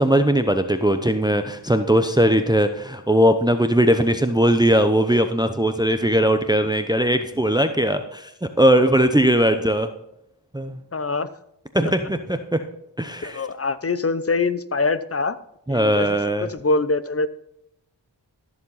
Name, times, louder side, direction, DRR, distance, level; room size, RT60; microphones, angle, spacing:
voice 1, 0.0-8.3 8.6-9.9 10.5-10.8 11.7-12.6 13.0-13.4 15.7-16.5, right 1 dB, 10° right, 8 dB, 0.7 m, -19 dB
voice 2, 10.9-11.3 13.2-15.4 15.7-17.3, left 3 dB, 35° left, 14 dB, 0.7 m, -24 dB
14.0 x 7.3 x 4.1 m, 0.80 s
cardioid pair, 40°, 43 cm